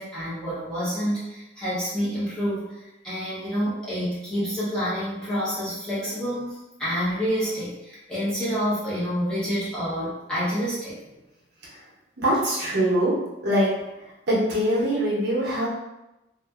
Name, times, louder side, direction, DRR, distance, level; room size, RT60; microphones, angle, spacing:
voice 1, 0.0-11.2, equal, 5° left, -11 dB, 0.9 m, -28 dB
voice 2, 12.2-13.1 13.4-13.7 14.3-15.7, equal, 60° right, -6 dB, 0.8 m, -22 dB
2.5 x 2.5 x 2.4 m, 0.97 s
head